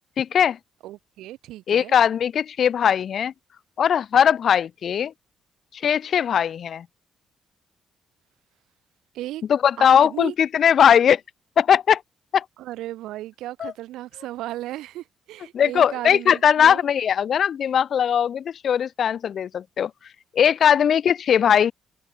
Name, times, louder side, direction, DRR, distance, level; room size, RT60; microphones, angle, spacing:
voice 1, 0.2-0.6 1.7-3.3 3.8-5.1 5.7-6.9 9.5-11.2 11.6-12.0 12.3-12.5 13.6-13.7 15.5-19.9 20.3-21.7, left 8 dB, 60° left, 0.3 m, -19 dB
voice 2, 0.8-1.9 9.1-9.4 9.8-10.3 12.6-16.8, right 15 dB, 90° right, 0.9 m, -35 dB
cardioid pair, 90°, 0 cm